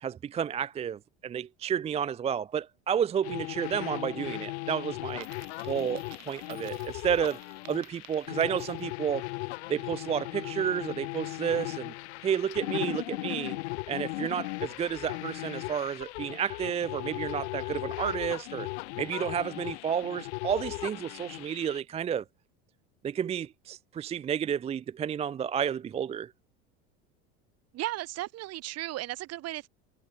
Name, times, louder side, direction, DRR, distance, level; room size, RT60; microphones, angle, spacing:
voice 1, 0.0-5.3 5.6-7.4 7.7-9.2 9.7-11.9 12.2-13.6 13.9-18.7 19.0-22.2 23.0-26.3, right 8 dB, 20° right, 0.4 m, -31 dB
sound 1, 3.2-21.8, left 21 dB, 80° left, 2.0 m, -37 dB
Coin (dropping), 5.1-9.0, right 31 dB, 75° right, 3.7 m, -54 dB
voice 2, 27.7-29.7, right 16 dB, 50° right, 2.3 m, -35 dB
supercardioid pair, 115°, 33 cm